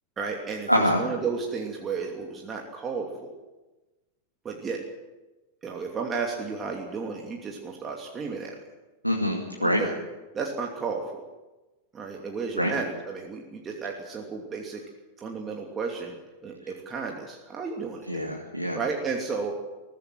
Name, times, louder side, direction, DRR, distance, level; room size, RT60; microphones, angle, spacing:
voice 1, 0.2-3.3 4.4-4.8 5.6-8.6 9.6-9.9 10.3-11.2 11.9-14.8 15.2-16.2 16.4-18.1 18.7-19.5, right 5 dB, 20° right, 0 dB, 2.8 m, -33 dB
voice 2, 0.7-1.0 9.0-9.8 12.6-12.7 18.1-18.8, equal, 90° right, -1 dB, 2.4 m, -25 dB
22.0 x 15.5 x 7.8 m, 1.1 s
figure-of-eight pair, 90°, 0 cm